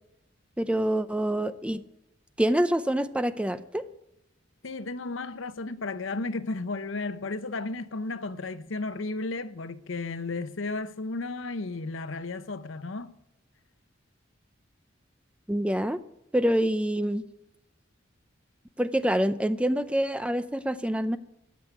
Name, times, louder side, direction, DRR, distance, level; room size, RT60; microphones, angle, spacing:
voice 1, 0.6-1.8 2.4-3.8 15.5-16.0 16.3-17.2 18.8-21.2, right 1 dB, 5° right, 0.5 m, -26 dB
voice 2, 4.6-13.1, left 3 dB, 85° left, 0.8 m, -34 dB
14.0 x 9.5 x 8.9 m
head